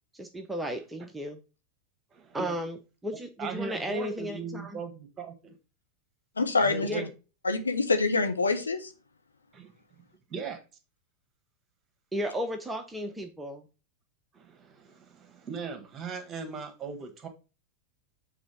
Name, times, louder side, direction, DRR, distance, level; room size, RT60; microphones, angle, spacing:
voice 1, 0.1-1.4 2.3-2.8 3.0-4.8 6.8-7.0 12.1-13.6, equal, 10° right, 5 dB, 0.7 m, -34 dB
voice 2, 2.1-2.6 3.4-5.5 6.6-7.1 9.5-9.7 10.3-10.6 14.3-17.3, right 5 dB, 25° right, 7 dB, 1.6 m, -39 dB
voice 3, 6.4-7.0 7.4-8.9, left 3 dB, 80° left, 7 dB, 0.9 m, -26 dB
6.9 x 3.7 x 5.2 m, 0.31 s
figure-of-eight pair, 90°, 0 cm